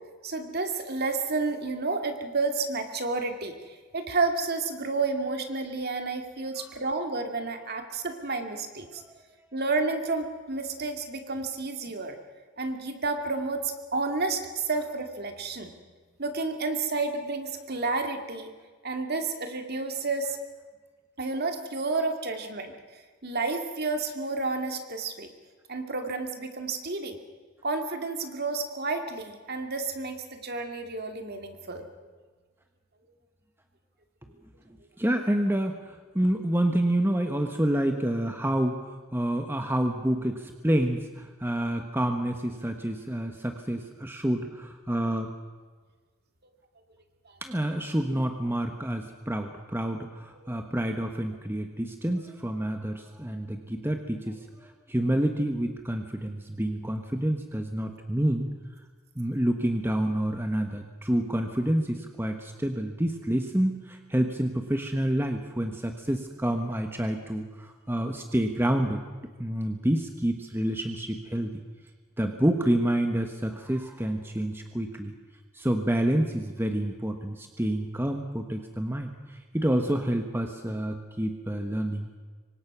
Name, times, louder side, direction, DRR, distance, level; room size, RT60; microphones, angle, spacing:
voice 1, 0.2-9.0 9.5-12.2 12.6-15.7 16.2-18.5 18.8-20.4 21.2-22.8 23.2-25.3 25.7-27.2 27.6-31.9 50.4-50.5, right 3 dB, 45° right, 5 dB, 2.4 m, -30 dB
voice 2, 35.0-45.3 47.4-58.5 59.2-69.0 69.4-71.6 72.2-75.1 75.5-82.2, right 1 dB, 10° right, 5 dB, 1.2 m, -28 dB
26.5 x 24.5 x 6.1 m, 1.4 s
head